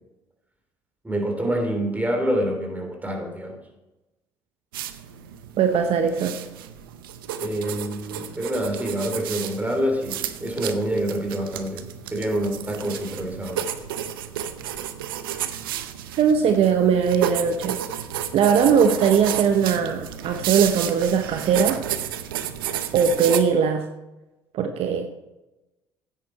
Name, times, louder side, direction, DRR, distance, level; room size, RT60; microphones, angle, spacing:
voice 1, 1.0-3.6 7.4-13.7, right 1 dB, 15° right, 3 dB, 3.2 m, -27 dB
sound 1, 4.7-23.4, right 10 dB, 85° right, 0.7 m, -32 dB
voice 2, 5.6-6.3 16.2-17.8 18.3-21.8 22.9-23.9 24.5-25.1, right 7 dB, 60° right, 6 dB, 0.9 m, -20 dB
13.5 x 9.4 x 4.4 m, 1.0 s
hypercardioid pair, 60°, 11 cm